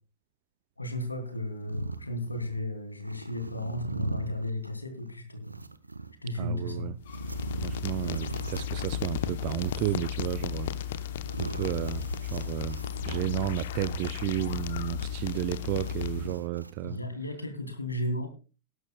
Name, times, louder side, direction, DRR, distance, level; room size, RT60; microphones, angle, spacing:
voice 1, 0.8-5.6 6.2-6.9 15.7-15.8 16.8-18.3, left 1 dB, 85° left, 5 dB, 2.7 m, -34 dB
sound 1, 1.3-2.6 2.9-6.1 6.9-14.5 15.0-17.0, right 3 dB, 85° right, 0.9 m, -40 dB
voice 2, 6.4-6.9 7.6-10.7 11.4-12.8 13.0-17.0, right 17 dB, 45° right, 14 dB, 0.5 m, -32 dB
sound 2, 7.0-16.4, left 10 dB, 55° left, 0.8 m, -34 dB
19.0 x 11.0 x 2.3 m, 0.34 s
figure-of-eight pair, 90°, 0 cm